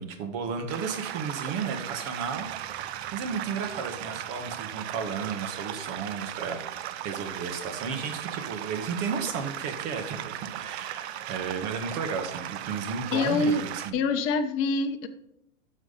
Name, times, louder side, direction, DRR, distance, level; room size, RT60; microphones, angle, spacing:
voice 1, 0.0-13.9, right 5 dB, 40° right, 6 dB, 1.8 m, -34 dB
sound 1, 0.7-13.9, right 11 dB, 55° right, 0.8 m, -37 dB
voice 2, 13.1-13.6 13.9-15.1, left 3 dB, 35° left, 6 dB, 0.9 m, -25 dB
10.5 x 6.3 x 4.2 m, 0.79 s
hypercardioid pair, 120°, 38 cm